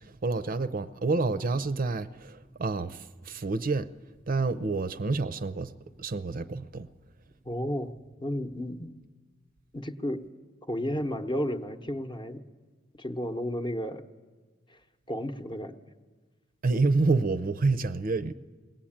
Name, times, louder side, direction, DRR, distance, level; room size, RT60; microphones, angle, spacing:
voice 1, 0.0-3.9 4.3-5.7 6.0-6.9 16.6-18.3, right 3 dB, 45° right, 0.6 m, -28 dB
voice 2, 7.5-7.9 8.2-8.9 9.7-10.2 10.7-12.4 12.9-14.0 14.7-14.8 15.1-15.9, equal, 25° left, 0.9 m, -32 dB
21.5 x 18.0 x 8.7 m
head